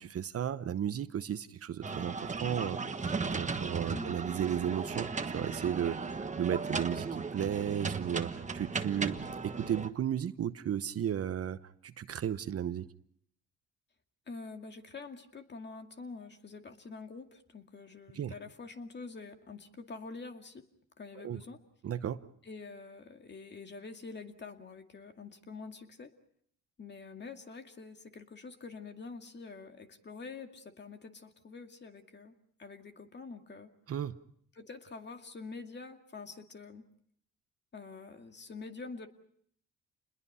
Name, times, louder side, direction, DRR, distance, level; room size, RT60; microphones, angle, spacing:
voice 1, 0.0-12.9 18.2-18.3 21.2-21.4 21.8-22.2 33.9-34.2, right 9 dB, 50° right, 13 dB, 0.9 m, -34 dB
sound 1, 1.8-9.9, right 4 dB, 25° right, 1.4 m, -36 dB
voice 2, 14.3-20.6 21.0-21.6 22.4-26.1 26.8-33.7 34.5-36.9 37.7-39.1, left 4 dB, 35° left, 5 dB, 2.3 m, -46 dB
28.5 x 21.0 x 5.6 m, 0.67 s
cardioid pair, 90°, 30 cm